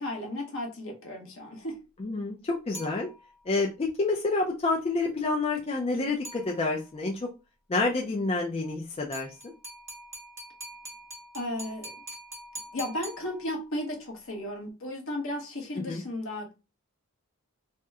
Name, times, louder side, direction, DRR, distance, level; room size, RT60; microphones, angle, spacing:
voice 1, 0.0-1.8 11.3-11.9 12.7-16.5, left 1 dB, 70° left, 1.1 m, -34 dB
voice 2, 2.0-3.1 3.5-7.3 7.7-9.5 15.8-16.0, left 3 dB, 30° left, 0.4 m, -28 dB
sound 1, 2.7-3.5 6.2-7.0 9.1-13.8, right 1 dB, 15° right, 1.2 m, -44 dB
2.8 x 2.1 x 3.4 m
head